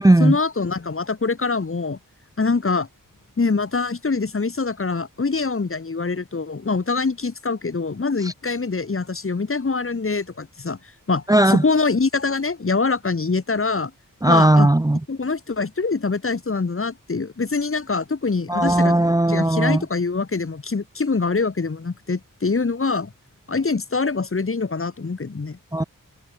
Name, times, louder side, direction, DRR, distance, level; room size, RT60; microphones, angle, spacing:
voice 1, 0.2-2.0 2.4-2.9 3.4-10.8 11.1-13.9 14.3-14.7 15.1-18.9 19.3-23.1 23.5-25.6, left 4 dB, 40° left, 1.8 m, -24 dB
voice 2, 11.3-11.6 14.2-15.0 18.5-19.8 25.7-25.8, right 1 dB, 10° right, 0.7 m, -16 dB
wide cardioid pair, 105°, 34 cm